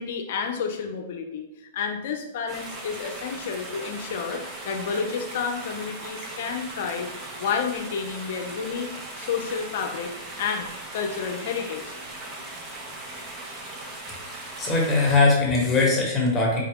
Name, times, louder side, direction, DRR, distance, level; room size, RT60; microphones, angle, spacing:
voice 1, 0.0-7.1 7.4-10.1 10.4-10.7 10.9-12.0, left 6 dB, 60° left, 4 dB, 0.5 m, -30 dB
sound 1, 2.5-15.2, right 2 dB, 30° right, 0.8 m, -38 dB
voice 2, 14.3-16.6, left 3 dB, 15° left, -3 dB, 1.2 m, -21 dB
4.5 x 2.3 x 3.5 m, 0.94 s
hypercardioid pair, 125°, 0 cm